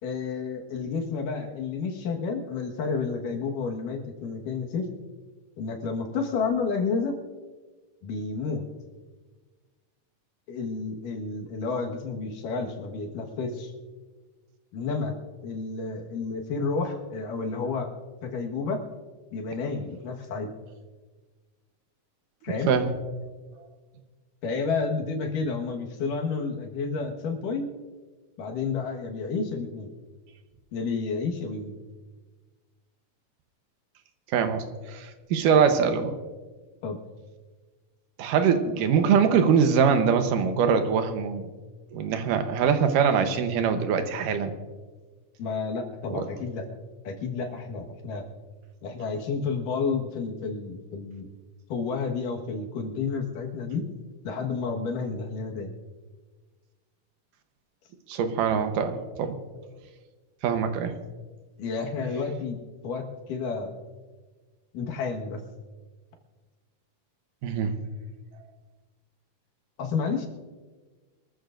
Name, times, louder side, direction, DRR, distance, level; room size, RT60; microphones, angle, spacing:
voice 1, 0.0-4.9 5.6-7.2 8.0-8.6 10.5-13.7 14.7-15.2 15.4-17.9 18.2-18.8 19.3-20.5 22.4-22.7 24.4-27.7 28.4-29.9 30.7-31.8 36.8-37.0 45.4-46.7 47.0-48.2 48.8-51.3 51.7-53.8 54.2-55.7 61.6-62.6 62.8-63.7 64.7-65.4 69.8-70.3, left 4 dB, 85° left, 1 dB, 3.2 m, -30 dB
voice 2, 34.3-36.2 38.2-41.5 41.9-44.5 46.1-46.3 58.1-59.4 60.4-61.0 67.4-67.7, right 6 dB, 85° right, 7 dB, 2.7 m, -23 dB
24.0 x 14.0 x 2.6 m, 1.3 s
omnidirectional pair, 3.7 m